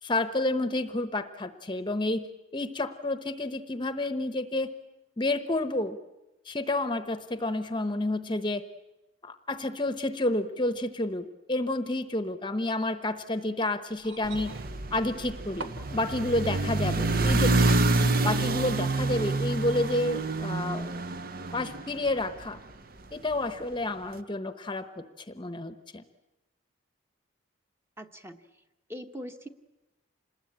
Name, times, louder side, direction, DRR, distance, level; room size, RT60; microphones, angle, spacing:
voice 1, 0.0-2.3 2.5-4.7 5.2-6.0 6.5-8.6 9.2-14.6 14.9-17.6 18.2-21.0 21.5-22.6 23.1-24.9 25.3-26.0, left 2 dB, 25° left, 10 dB, 0.9 m, -30 dB
sound 1, 13.9-16.9 18.0-18.1, right 3 dB, 70° right, 1.8 m, -45 dB
sound 2, 14.2-22.6, right 2 dB, 45° right, 0.9 m, -27 dB
voice 2, 28.0-28.4 28.9-29.5, equal, 10° right, 5 dB, 1.2 m, -41 dB
27.0 x 20.5 x 8.8 m, 1.0 s
head